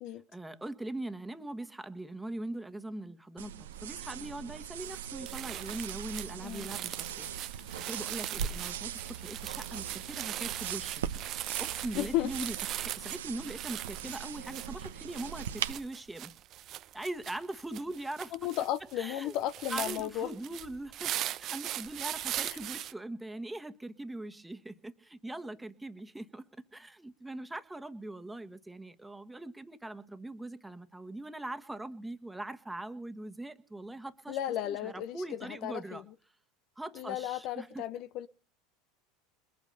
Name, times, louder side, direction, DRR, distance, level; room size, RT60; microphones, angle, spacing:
voice 1, 0.3-7.3 7.5-11.0 11.6-16.3 16.9-18.3 19.0-19.3 19.7-34.4 34.6-36.0 36.8-37.8, right 2 dB, 10° right, 1.4 m, -41 dB
sound 1, 3.4-15.7, right 9 dB, 80° right, 1.0 m, -40 dB
sound 2, 4.8-5.0 5.3-22.9, right 13 dB, 50° right, 0.7 m, -40 dB
voice 2, 11.9-12.3 18.3-20.3 22.4-22.6 34.3-36.0 36.9-38.3, left 12 dB, 55° left, 0.8 m, -34 dB
21.5 x 8.5 x 6.8 m
hypercardioid pair, 85°, 0 cm